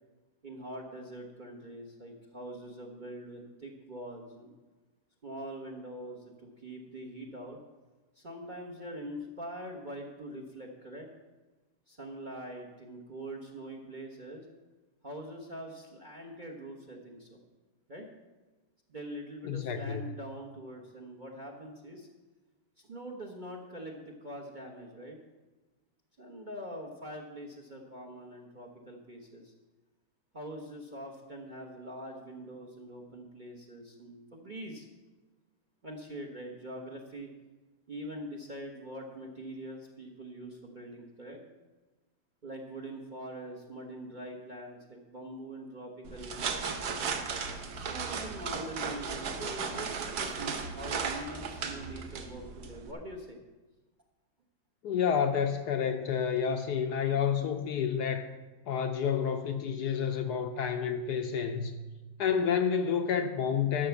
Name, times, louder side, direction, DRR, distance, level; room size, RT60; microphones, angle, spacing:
voice 1, 0.4-4.5 5.2-7.6 8.1-11.1 11.9-14.5 15.0-17.4 17.9-18.1 18.9-22.1 22.8-25.2 26.2-29.5 30.3-34.9 35.8-37.3 37.9-41.4 42.4-46.7 47.7-53.4, right 1 dB, 35° right, 0.9 m, -43 dB
voice 2, 19.4-20.0 54.8-58.3 58.7-61.7 62.2-63.9, left 7 dB, 70° left, 1.1 m, -29 dB
sound 1, 46.0-52.9, right 5 dB, 60° right, 1.3 m, -36 dB
11.5 x 6.0 x 7.0 m
omnidirectional pair, 2.0 m